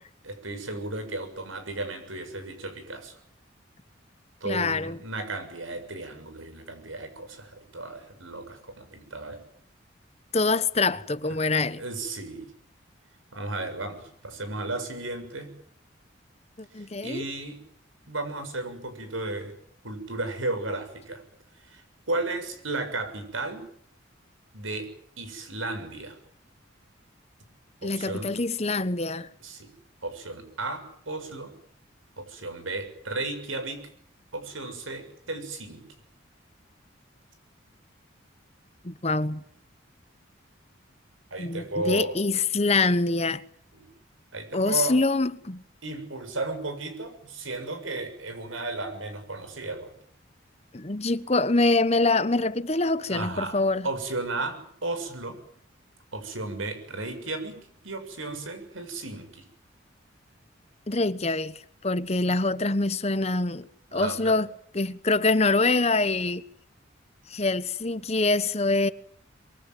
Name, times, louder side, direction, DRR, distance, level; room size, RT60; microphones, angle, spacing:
voice 1, 0.2-3.2 4.4-9.4 11.8-12.4 13.3-15.5 16.8-17.6 18.1-19.5 19.8-21.2 21.7-21.8 22.1-23.7 24.5-24.9 25.2-26.2 27.8-28.3 29.4-29.7 30.0-31.5 32.2-33.8 34.3-35.8 41.3-42.2 43.7-43.9 44.3-45.0 45.8-49.9 53.1-53.6 53.8-55.4 56.1-59.5 63.9-64.4, right 2 dB, 85° right, 6.9 m, -34 dB
voice 2, 4.4-5.0 10.3-11.8 16.6-17.2 27.8-29.3 38.8-39.4 41.4-43.4 44.5-45.6 50.7-53.9 60.9-64.5 64.7-66.5 67.3-68.9, left 3 dB, 30° left, 1.0 m, -25 dB
24.5 x 23.5 x 9.3 m
head